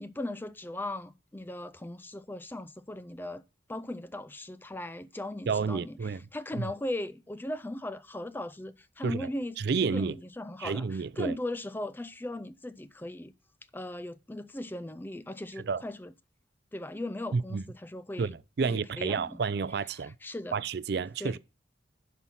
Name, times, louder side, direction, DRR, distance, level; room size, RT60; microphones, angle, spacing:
voice 1, 0.0-3.4 3.7-13.3 13.7-16.1 16.7-18.3 18.6-19.4 19.9-20.6 21.2-21.4, left 1 dB, 10° left, 0.4 m, -38 dB
voice 2, 5.5-6.2 9.0-9.3 9.6-10.2 10.6-11.3 15.6-15.8 17.3-17.6 18.2-20.1 20.5-21.4, right 5 dB, 60° right, 0.4 m, -30 dB
11.0 x 5.5 x 5.7 m
head